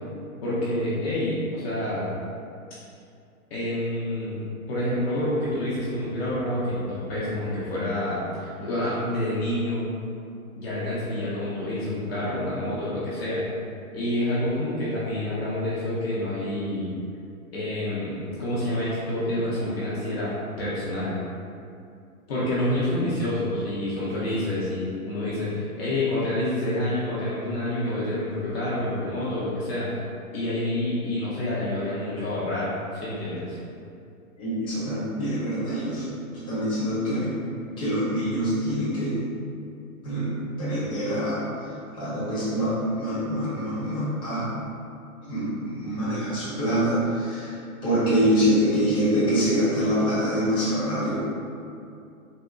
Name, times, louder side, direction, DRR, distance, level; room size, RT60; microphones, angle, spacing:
voice 1, 0.4-2.2 3.5-4.4 4.7-9.8 10.6-13.4 13.9-16.9 17.5-20.3 20.6-21.2 22.3-29.9 30.3-33.6, left 1 dB, 45° left, -9 dB, 0.6 m, -28 dB
voice 2, 34.4-36.0 36.3-37.3 37.8-39.1 40.0-44.5 45.3-47.5 47.8-51.1, equal, 10° left, -12 dB, 0.8 m, -25 dB
3.7 x 2.1 x 2.3 m, 2.5 s
hypercardioid pair, 140°, 44 cm